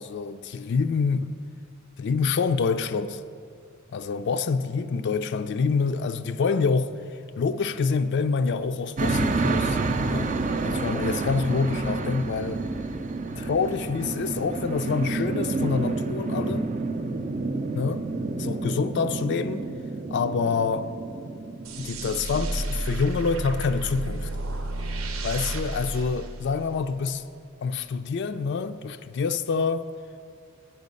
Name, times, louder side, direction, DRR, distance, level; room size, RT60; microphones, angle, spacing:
voice 1, 0.0-1.3 2.0-3.2 3.9-6.9 7.4-9.8 10.1-10.3 10.6-12.6 13.4-16.7 17.7-18.1 18.4-19.7 20.1-20.9 21.8-24.3 25.2-27.3 27.6-29.9, left 5 dB, 55° left, 0.3 m, -26 dB
sound 1, 9.0-23.2, right 3 dB, 35° right, 0.4 m, -29 dB
sound 2, 21.6-27.0, right 2 dB, 70° right, 0.7 m, -32 dB
9.1 x 8.2 x 5.3 m
head